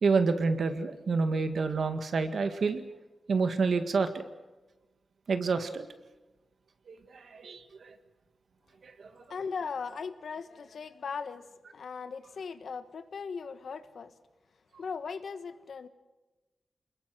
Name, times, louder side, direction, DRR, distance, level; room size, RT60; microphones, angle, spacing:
voice 1, 0.0-2.8 3.3-4.2 5.3-5.8 6.9-7.0 7.3-7.6 8.8-8.9, right 4 dB, 65° right, 8 dB, 1.9 m, -28 dB
voice 2, 9.3-14.1 14.8-15.9, left 5 dB, 75° left, 10 dB, 1.5 m, -38 dB
28.0 x 21.5 x 6.2 m, 1.1 s
wide cardioid pair, 135°, 0 cm